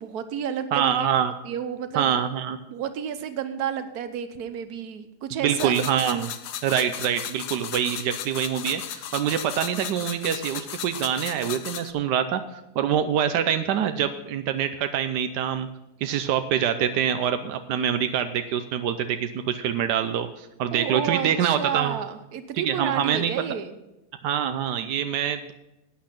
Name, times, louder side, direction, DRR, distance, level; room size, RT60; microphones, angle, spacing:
voice 1, 0.0-1.1 1.4-2.2 2.7-5.7 20.7-23.8, right 8 dB, 70° right, 10 dB, 1.4 m, -31 dB
voice 2, 0.7-1.3 1.9-2.6 5.4-6.3 6.6-15.7 16.0-22.0 22.6-23.3 24.2-25.5, right 9 dB, 85° right, 9 dB, 1.3 m, -25 dB
sound 1, 5.6-11.9, left 10 dB, 80° left, 1.3 m, -36 dB
11.5 x 8.7 x 5.8 m, 0.92 s
omnidirectional pair, 1.7 m